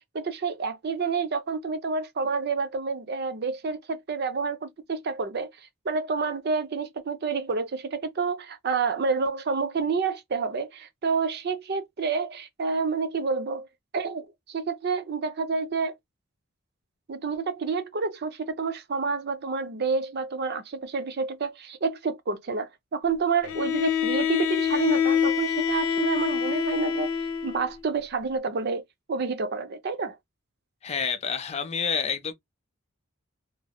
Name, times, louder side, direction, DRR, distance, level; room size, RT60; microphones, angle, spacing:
voice 1, 0.1-5.5 5.9-13.7 13.9-15.9 17.1-27.1 27.4-28.8 29.1-30.2, right 4 dB, 50° right, 0.5 m, -29 dB
Bowed string instrument, 23.4-27.7, left 7 dB, 80° left, 0.6 m, -26 dB
voice 2, 30.8-32.3, left 6 dB, 30° left, 0.4 m, -28 dB
3.0 x 2.6 x 2.2 m
head